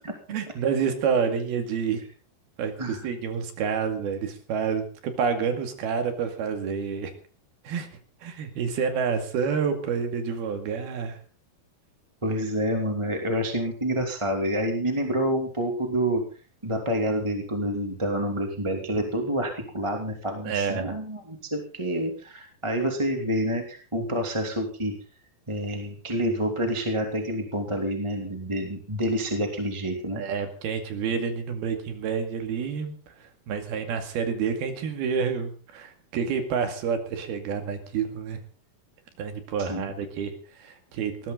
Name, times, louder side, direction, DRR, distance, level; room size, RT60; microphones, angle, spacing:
voice 1, 0.3-2.0 2.6-7.1 7.6-7.9 8.2-11.2 20.4-21.0 30.1-38.4 39.2-41.3, right 6 dB, 90° right, 6 dB, 4.2 m, -28 dB
voice 2, 12.2-16.2 16.6-24.9 25.5-30.2 39.7-39.9, equal, 10° right, 3 dB, 2.0 m, -28 dB
19.5 x 16.5 x 3.9 m, 0.38 s
omnidirectional pair, 4.3 m